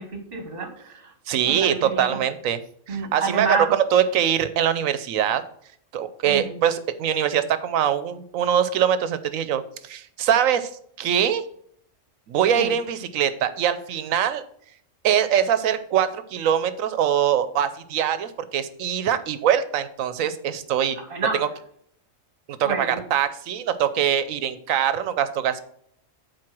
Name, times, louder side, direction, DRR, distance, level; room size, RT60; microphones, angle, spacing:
voice 1, 0.0-1.1 1.4-2.2 2.9-3.7 6.2-6.6 12.5-12.7 21.0-21.4 22.6-23.0, right 4 dB, 45° right, 4 dB, 1.7 m, -29 dB
voice 2, 1.3-2.6 2.9-5.4 5.9-10.7 11.0-11.4 12.3-14.4 15.0-21.0 21.4-21.5 22.5-25.6, right 9 dB, 90° right, 13 dB, 1.1 m, -23 dB
7.6 x 4.6 x 6.0 m, 0.66 s
omnidirectional pair, 1.4 m